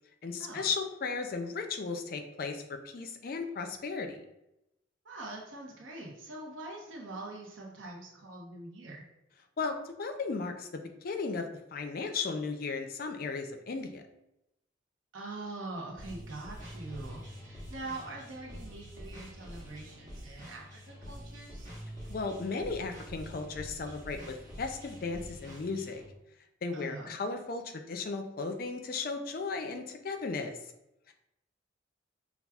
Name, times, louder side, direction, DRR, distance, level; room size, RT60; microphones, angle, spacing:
voice 1, 0.2-4.2 9.6-10.7 11.0-11.5 11.7-14.0 22.1-26.0 26.6-30.6 31.1-31.2, left 4 dB, 50° left, 6 dB, 0.4 m, -35 dB
voice 2, 5.0-9.0 15.1-21.7 26.7-27.1, right 2 dB, 85° right, -2 dB, 0.8 m, -43 dB
sound 1, 16.0-26.1, equal, 40° right, 1.2 m, -46 dB
5.5 x 2.3 x 2.3 m, 0.88 s
head